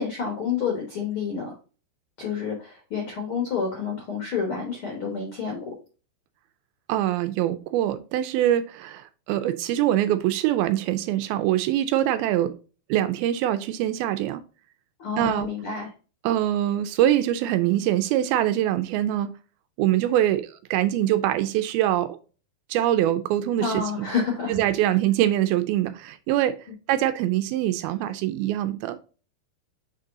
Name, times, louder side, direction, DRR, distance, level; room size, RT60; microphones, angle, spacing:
voice 1, 0.0-1.5 2.2-5.7 15.0-15.9 23.6-24.5, left 6 dB, 65° left, 1.3 m, -29 dB
voice 2, 6.9-12.6 12.9-14.4 15.2-15.5 16.2-19.3 19.8-22.2 22.7-23.8 24.5-26.6 26.9-29.0, right 12 dB, 80° right, 2.3 m, -23 dB
6.6 x 3.9 x 3.7 m
omnidirectional pair, 4.5 m